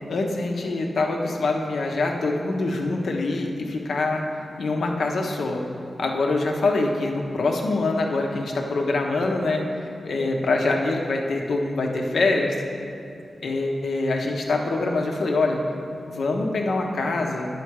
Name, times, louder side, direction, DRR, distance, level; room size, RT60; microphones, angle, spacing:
voice 1, 0.1-5.6 6.0-12.6 13.4-15.6 16.1-17.5, left 2 dB, 75° left, 1 dB, 0.9 m, -24 dB
9.5 x 6.8 x 4.8 m, 2.5 s
wide cardioid pair, 165°, 0 cm